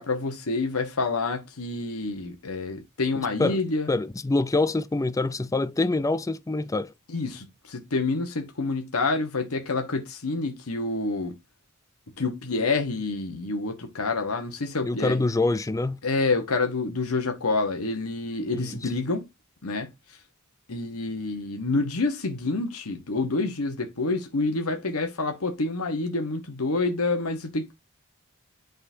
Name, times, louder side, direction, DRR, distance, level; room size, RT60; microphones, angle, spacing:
voice 1, 0.0-3.9 7.1-11.4 12.2-15.2 16.0-19.3 19.6-20.2 20.7-27.7, left 3 dB, 90° left, 1.3 m, -28 dB
voice 2, 3.2-3.6 3.9-6.9 14.8-16.0 18.5-18.8, left 2 dB, 15° left, 0.4 m, -25 dB
11.5 x 3.9 x 2.7 m
head